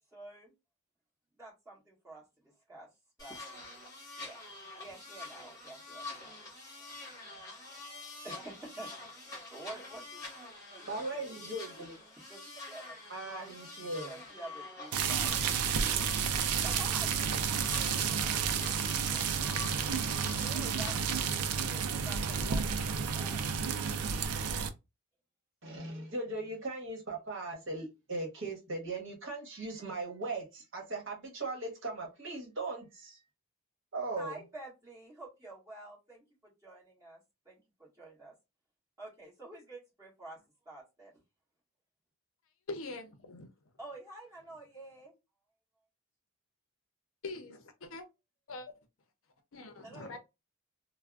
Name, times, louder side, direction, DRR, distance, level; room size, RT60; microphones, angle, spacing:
voice 1, 0.1-0.5 1.3-2.9 3.2-3.4 4.2-4.4 4.8-6.4 6.8-10.2 10.7-11.4 12.3-13.5 14.0-16.1 16.6-19.3 20.0-23.7 34.2-37.2 37.4-38.3 39.0-40.4 40.6-41.2 43.8-45.1 49.8-50.2, right 2 dB, 15° right, 1.4 m, -49 dB
sound 1, 3.2-21.0, left 2 dB, 15° left, 1.1 m, -47 dB
voice 2, 10.9-12.0 13.1-14.1 25.6-33.2 33.9-34.4, right 2 dB, 55° right, 1.1 m, -38 dB
sound 2, 14.9-24.7, right 6 dB, 85° right, 0.4 m, -31 dB
voice 3, 42.7-43.5 47.2-48.1 48.5-48.7 49.5-50.2, left 3 dB, 65° left, 0.5 m, -43 dB
3.3 x 2.0 x 2.3 m
head